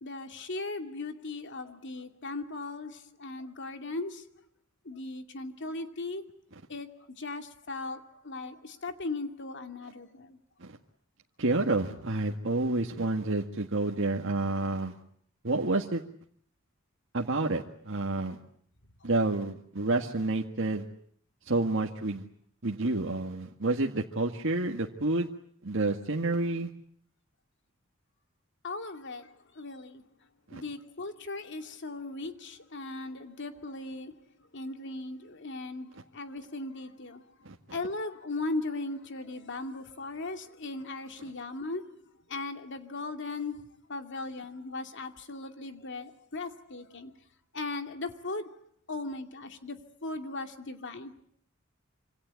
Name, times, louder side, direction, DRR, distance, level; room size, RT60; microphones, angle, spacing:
voice 1, 0.0-4.2 4.8-6.2 6.7-10.4 28.6-29.3 29.5-30.0 30.5-34.2 34.5-37.2 37.7-42.0 42.3-47.1 47.5-48.5 48.9-51.1, left 2 dB, 60° left, 2.6 m, -38 dB
voice 2, 11.4-15.0 15.4-16.0 17.1-18.4 19.0-20.8 21.5-22.2 22.6-25.3 25.6-26.7 30.5-30.6 37.5-37.6, right 2 dB, 65° right, 1.8 m, -29 dB
26.5 x 26.5 x 8.3 m
head